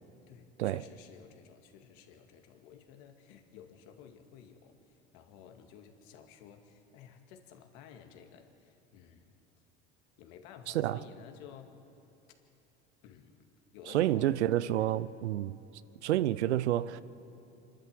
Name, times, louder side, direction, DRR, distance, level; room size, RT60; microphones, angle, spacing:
voice 1, 0.3-9.3 10.2-11.8 13.0-13.5 13.7-14.4 14.6-14.9, left 8 dB, 65° left, 2.2 m, -54 dB
voice 2, 10.7-11.0 13.9-15.6 16.0-17.0, right 13 dB, 85° right, 0.6 m, -29 dB
27.0 x 12.5 x 7.7 m
hypercardioid pair, 80°, 33 cm